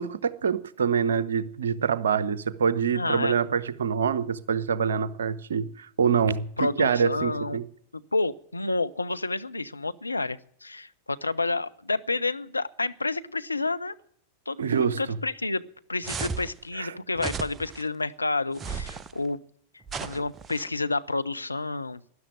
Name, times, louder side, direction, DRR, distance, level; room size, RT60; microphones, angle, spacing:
voice 1, 0.0-7.6 14.6-15.2 16.8-16.9, right 6 dB, 65° right, 0.8 m, -25 dB
voice 2, 2.9-3.4 6.6-7.6 7.9-14.0 14.5-15.6 15.9-19.4 20.0-22.0, left 3 dB, 80° left, 0.6 m, -29 dB
sound 1, 16.0-16.5 17.2-17.8 18.6-19.1 19.9-20.7, right 5 dB, 20° right, 0.8 m, -34 dB
12.5 x 11.0 x 9.1 m
figure-of-eight pair, 90°, 0 cm